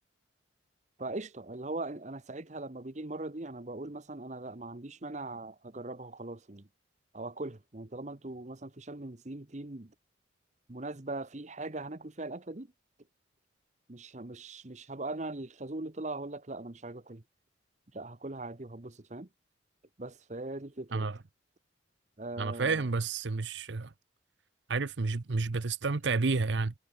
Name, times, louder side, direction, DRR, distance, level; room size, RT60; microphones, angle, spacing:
voice 1, 1.0-6.7 7.1-9.9 10.7-12.7 13.9-17.2 17.9-19.3 20.0-21.1 22.2-22.9, right 2 dB, 40° right, 1.1 m, -40 dB
voice 2, 22.4-23.9 24.7-26.7, right 4 dB, 70° right, 0.8 m, -30 dB
head